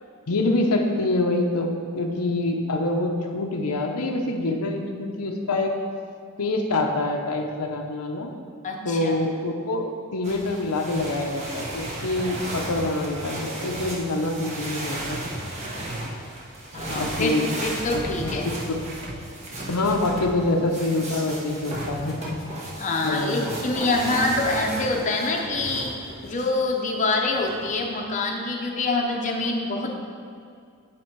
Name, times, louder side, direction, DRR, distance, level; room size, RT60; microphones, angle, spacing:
voice 1, 0.3-5.7 6.4-8.3 8.8-15.2 16.9-17.5 17.9-18.3 19.7-22.3 23.0-23.4, left 2 dB, 85° left, 3 dB, 0.7 m, -26 dB
voice 2, 8.6-9.1 16.7-18.5 22.8-25.9 26.2-30.0, left 2 dB, 35° left, 0 dB, 0.7 m, -25 dB
sound 1, 10.2-26.6 27.3-28.0, right 1 dB, 30° right, 1.2 m, -34 dB
8.9 x 4.3 x 4.6 m, 2.3 s
head